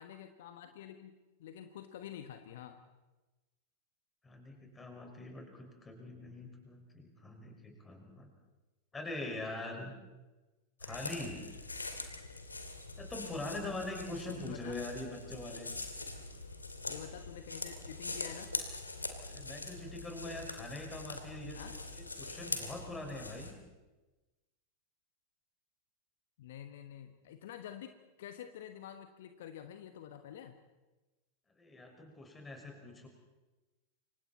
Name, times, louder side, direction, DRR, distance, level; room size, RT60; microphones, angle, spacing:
voice 1, 0.0-2.8 14.4-14.7 16.9-18.5 21.5-21.7 26.4-30.6, left 10 dB, 55° left, 8 dB, 1.2 m, -48 dB
voice 2, 4.2-8.3 8.9-9.9 10.8-11.4 13.0-15.7 19.3-21.6 21.9-23.5 31.6-33.1, left 2 dB, 15° left, 2 dB, 5.6 m, -43 dB
sound 1, 10.8-23.5, left 3 dB, 80° left, 2.5 m, -43 dB
29.0 x 25.0 x 4.3 m, 1.1 s
figure-of-eight pair, 90°, 0 cm